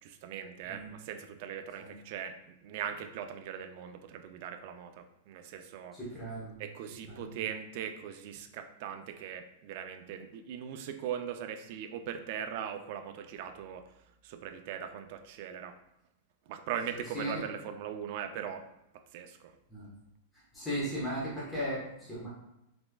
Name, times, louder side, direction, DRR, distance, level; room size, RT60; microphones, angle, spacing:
voice 1, 0.0-6.0 6.6-13.9 14.2-15.8 16.5-18.7 18.9-19.5, right 8 dB, 50° right, 8 dB, 0.3 m, -40 dB
voice 2, 5.9-6.6 7.1-7.4 17.1-17.5 19.7-19.9 20.5-22.3, equal, 5° left, -9 dB, 0.9 m, -36 dB
3.3 x 3.1 x 2.2 m, 0.85 s
supercardioid pair, 150°, 0 cm